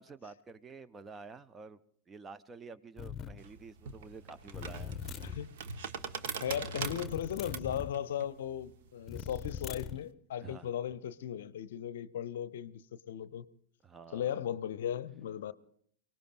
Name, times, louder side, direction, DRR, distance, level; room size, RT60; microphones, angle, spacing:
voice 1, 0.0-1.8 2.1-5.0 10.4-10.7 13.8-14.3, right 4 dB, 20° right, 0.6 m, -49 dB
sound 1, 3.0-3.4 4.5-5.4 6.8-7.9 9.1-10.0, left 8 dB, 25° left, 0.8 m, -41 dB
sound 2, 3.4-10.0, right 6 dB, 55° right, 1.2 m, -43 dB
voice 2, 6.4-13.4 14.1-15.5, left 10 dB, 60° left, 0.6 m, -37 dB
29.5 x 18.5 x 2.5 m
figure-of-eight pair, 90°, 0 cm